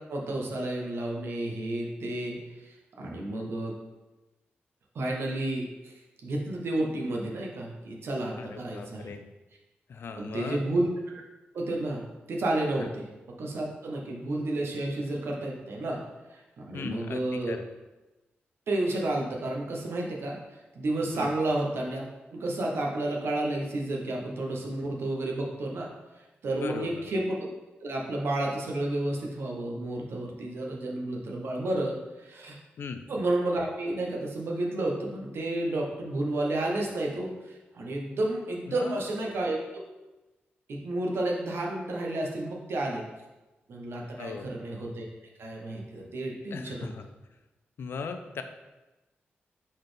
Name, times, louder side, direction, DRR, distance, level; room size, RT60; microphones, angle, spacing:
voice 1, 0.1-3.8 4.9-5.9 6.2-9.1 10.1-11.2 11.5-12.0 12.3-16.0 16.3-17.5 18.7-20.4 20.7-22.0 22.3-25.9 26.4-27.4 27.8-32.5 33.1-39.9 40.7-43.0 43.7-45.1 45.4-46.9, right 1 dB, 75° right, -1 dB, 0.9 m, -31 dB
voice 2, 8.4-9.2 9.9-10.6 16.7-17.7 21.1-21.3 26.5-27.1 32.8-33.1 38.7-39.0 44.2-44.5 46.0-46.1 46.5-47.1 47.8-48.4, left 5 dB, 65° left, 7 dB, 0.4 m, -38 dB
4.1 x 4.0 x 3.3 m, 1.1 s
wide cardioid pair, 105°, 4 cm